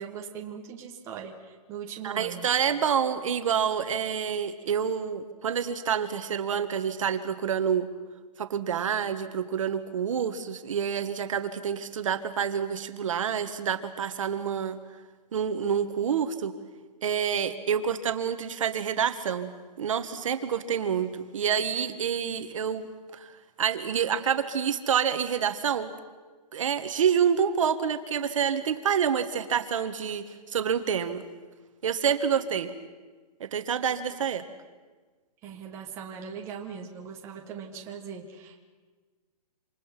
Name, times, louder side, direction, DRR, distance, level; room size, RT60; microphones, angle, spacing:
voice 1, 0.0-1.3 1.7-2.5 35.4-38.6, right 7 dB, 15° right, 1 dB, 1.5 m, -40 dB
voice 2, 2.0-7.9 8.4-14.8 15.3-16.5 17.0-19.5 19.8-22.9 23.1-25.9 26.5-30.2 30.5-31.2 31.8-32.7 33.4-34.4, right 8 dB, 50° right, 9 dB, 1.5 m, -27 dB
27.5 x 26.5 x 6.0 m, 1.4 s
hypercardioid pair, 175°, 21 cm